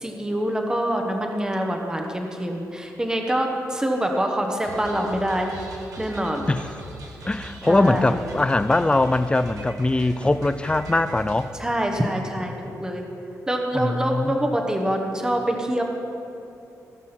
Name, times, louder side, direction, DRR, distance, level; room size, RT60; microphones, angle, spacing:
voice 1, 0.0-5.6 6.0-6.5 7.7-8.2 11.6-13.0 13.5-15.8, right 1 dB, 10° right, 2 dB, 1.2 m, -25 dB
sound 1, 4.6-11.5, right 1 dB, 65° right, 1.7 m, -41 dB
voice 2, 7.2-11.5 13.7-14.6, left 2 dB, 15° left, 13 dB, 0.5 m, -22 dB
16.5 x 6.2 x 5.9 m, 2.8 s
cardioid pair, 75°, 6 cm